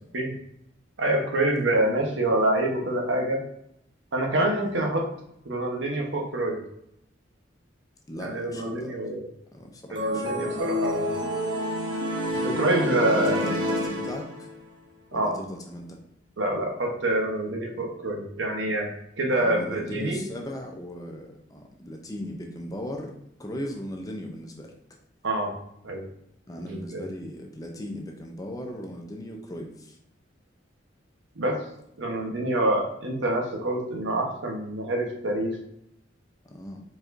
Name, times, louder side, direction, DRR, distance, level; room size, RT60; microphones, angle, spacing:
voice 1, 1.0-3.4 4.1-5.1 5.4-6.6 8.2-9.3 9.9-11.1 12.3-13.4 15.1-15.3 16.4-18.9 19.2-20.2 25.2-25.5 25.8-26.0 26.6-27.1 31.4-31.6 32.0-35.6, right 1 dB, 75° right, 1 dB, 1.0 m, -26 dB
voice 2, 8.1-9.0 9.5-10.4 13.1-14.5 15.1-16.0 19.3-23.1 23.4-24.7 26.5-30.0 36.4-36.8, left 1 dB, 20° left, 2 dB, 0.5 m, -37 dB
sound 1, 10.0-14.6, left 1 dB, 25° right, 0.8 m, -28 dB
4.6 x 4.5 x 2.6 m, 0.75 s
head